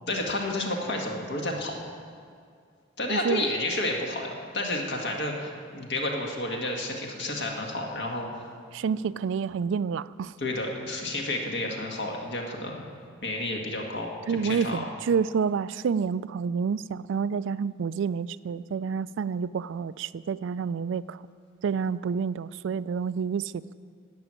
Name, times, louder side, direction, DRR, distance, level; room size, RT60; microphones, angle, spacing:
voice 1, 0.1-1.8 3.0-8.5 10.4-12.8 13.2-14.8, left 2 dB, 55° left, 1 dB, 1.7 m, -31 dB
voice 2, 3.1-3.4 8.7-10.3 14.3-21.2 21.6-23.6, right 6 dB, 65° right, 18 dB, 0.3 m, -28 dB
14.0 x 6.1 x 9.6 m, 2.2 s
head